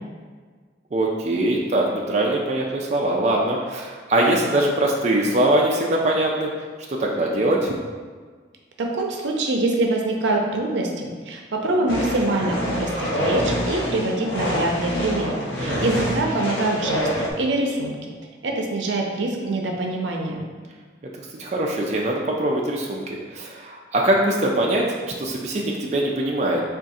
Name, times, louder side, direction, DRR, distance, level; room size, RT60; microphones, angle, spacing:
voice 1, 0.9-6.5 6.9-7.7 15.6-15.9 21.4-26.6, right 1 dB, 40° right, -2 dB, 0.4 m, -22 dB
voice 2, 8.8-18.0 18.4-20.4, right 2 dB, 85° right, 1 dB, 0.6 m, -24 dB
sound 1, 11.9-17.3, equal, 90° left, 0.8 m, -26 dB
3.6 x 2.5 x 4.0 m, 1.6 s
head